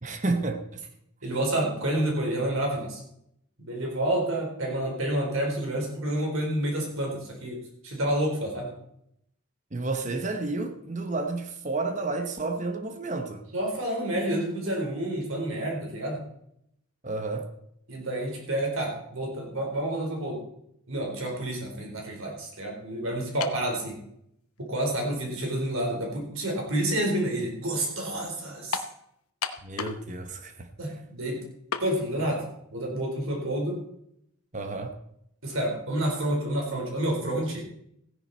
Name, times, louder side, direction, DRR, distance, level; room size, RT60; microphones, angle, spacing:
voice 1, 0.0-0.8 9.7-13.4 17.0-17.5 29.6-30.7 34.5-34.9, right 3 dB, 35° right, 0.9 m, -31 dB
voice 2, 1.2-3.0 3.6-7.6 7.8-8.7 13.5-16.2 17.9-20.4 20.9-24.0 24.6-28.8 30.8-31.4 31.8-32.4 32.7-33.8 35.4-37.6, right 1 dB, 70° right, 4.4 m, -29 dB
sound 1, 23.4-23.7 24.6-24.7 28.7-29.0 29.4-30.1 30.3-30.4 31.7-31.9, left 6 dB, 85° left, 0.9 m, -32 dB
15.5 x 10.5 x 4.4 m
head